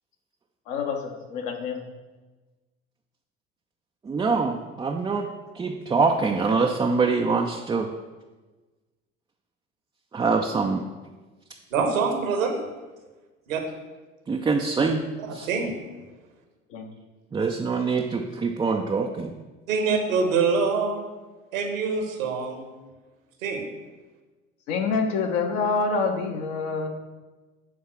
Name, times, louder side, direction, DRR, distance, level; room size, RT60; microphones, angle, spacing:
voice 1, 0.7-1.8 16.7-16.9 24.7-26.9, left 4 dB, 65° left, 3 dB, 1.2 m, -26 dB
voice 2, 4.1-5.3 5.5-7.9 10.1-10.8 14.3-15.0 15.3-15.5 17.3-19.3, right 4 dB, 10° right, 2 dB, 0.3 m, -24 dB
voice 3, 11.7-12.6 13.5-13.6 15.3-15.8 19.7-21.1 21.5-22.7 23.4-23.6, right 5 dB, 75° right, 4 dB, 1.3 m, -25 dB
8.4 x 3.6 x 5.9 m, 1.2 s
figure-of-eight pair, 65°, 40 cm